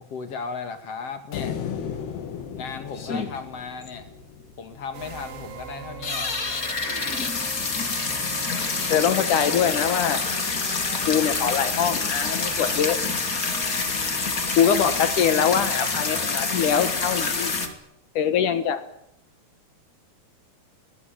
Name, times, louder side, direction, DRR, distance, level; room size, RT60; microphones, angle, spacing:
voice 1, 0.0-1.6 2.5-4.1 4.6-6.3, left 5 dB, 45° left, 8 dB, 2.8 m, -35 dB
sound 1, 1.3-4.7, left 8 dB, 80° left, 4.0 m, -35 dB
sound 2, 2.0-2.1 2.4-2.5 2.9-3.6 4.0-4.2 4.7-4.8 5.3-5.5 5.9-17.7, left 4 dB, 30° left, 2.0 m, -27 dB
sound 3, 4.9-17.8, right 6 dB, 75° right, 4.6 m, -40 dB
voice 2, 8.9-10.3 11.1-13.0 14.6-17.5 18.2-18.8, left 8 dB, 60° left, 11 dB, 2.5 m, -23 dB
22.5 x 19.5 x 9.1 m, 0.74 s
omnidirectional pair, 4.7 m